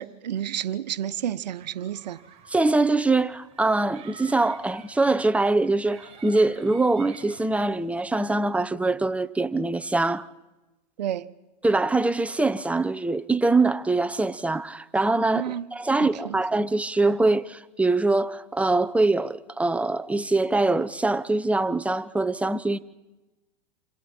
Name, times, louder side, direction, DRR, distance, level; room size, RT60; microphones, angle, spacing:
voice 1, 0.0-2.2 11.0-11.3 15.2-16.4, right 10 dB, 90° right, 1.0 m, -31 dB
sound 1, 1.6-8.0, right 6 dB, 30° right, 7.3 m, -50 dB
voice 2, 2.5-10.3 11.6-22.8, right 2 dB, 5° right, 0.8 m, -23 dB
29.0 x 26.5 x 4.4 m
hypercardioid pair, 115°, 21 cm